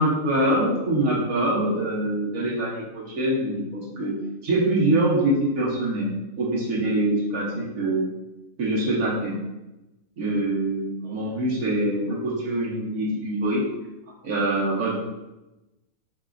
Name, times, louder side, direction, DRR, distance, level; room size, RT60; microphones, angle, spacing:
voice 1, 0.0-4.1 4.4-8.1 8.6-9.4 10.2-13.7 14.2-15.0, right 1 dB, 80° right, -6 dB, 1.4 m, -24 dB
4.8 x 4.1 x 2.5 m, 0.99 s
omnidirectional pair, 1.5 m